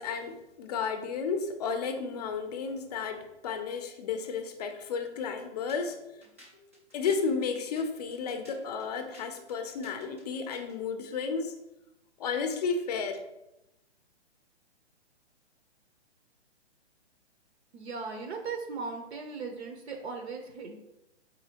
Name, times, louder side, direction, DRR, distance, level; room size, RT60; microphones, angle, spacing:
voice 1, 0.0-6.0 6.9-11.5 12.2-13.2, left 5 dB, 35° left, 7 dB, 0.5 m, -32 dB
sound 1, 5.7-10.8, left 1 dB, 15° right, 0.3 m, -55 dB
voice 2, 17.7-20.8, right 4 dB, 70° right, 4 dB, 0.8 m, -38 dB
4.1 x 4.0 x 2.8 m, 0.92 s
hypercardioid pair, 145°, 34 cm